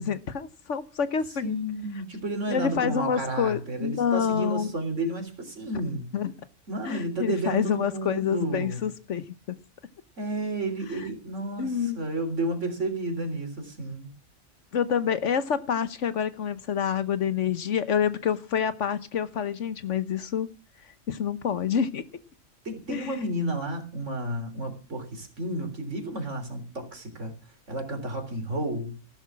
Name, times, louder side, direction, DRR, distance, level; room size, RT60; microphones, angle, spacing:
voice 1, 0.0-1.6 2.5-4.7 6.1-6.3 6.8-9.6 11.6-12.0 14.7-20.5 21.1-22.0 22.9-23.2, left 7 dB, 65° left, 1.3 m, -27 dB
voice 2, 1.4-6.1 6.7-8.8 10.2-14.1 22.7-27.3 27.7-29.0, right 1 dB, 65° right, 3.8 m, -31 dB
14.5 x 12.0 x 6.1 m
omnidirectional pair, 1.4 m